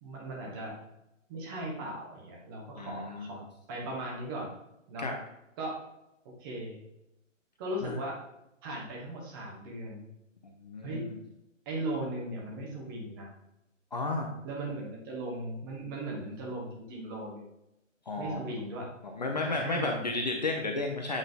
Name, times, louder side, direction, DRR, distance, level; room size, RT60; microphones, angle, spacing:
voice 1, 0.0-0.7 1.3-4.5 4.9-5.1 5.6-5.8 6.4-6.8 7.6-8.2 8.6-10.1 10.8-11.1 11.6-13.3 14.4-17.5 18.2-18.9 19.4-20.1, right 1 dB, 15° right, -2 dB, 1.1 m, -38 dB
voice 2, 2.8-3.4 5.0-5.2 7.8-7.9 10.4-11.1 13.9-14.3 18.1-18.4 19.2-21.2, left 2 dB, 35° left, 2 dB, 0.6 m, -33 dB
8.1 x 3.8 x 3.4 m, 0.86 s
figure-of-eight pair, 135°, 39 cm